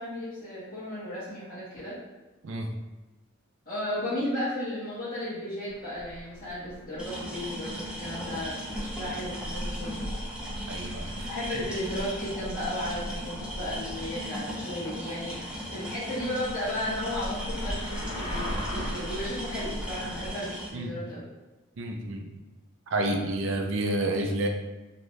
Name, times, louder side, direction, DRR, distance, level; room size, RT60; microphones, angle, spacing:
voice 1, 0.0-2.0 3.7-10.0 11.3-21.3, left 1 dB, 40° left, -11 dB, 1.0 m, -34 dB
sound 1, 5.7-20.3, equal, 80° left, 0.8 m, -39 dB
sound 2, 7.0-20.7, equal, 5° right, 0.4 m, -37 dB
voice 2, 10.7-11.3 20.7-21.0 21.8-22.3 22.9-24.5, right 1 dB, 65° right, 3 dB, 0.4 m, -29 dB
2.6 x 2.2 x 3.1 m, 1.1 s
head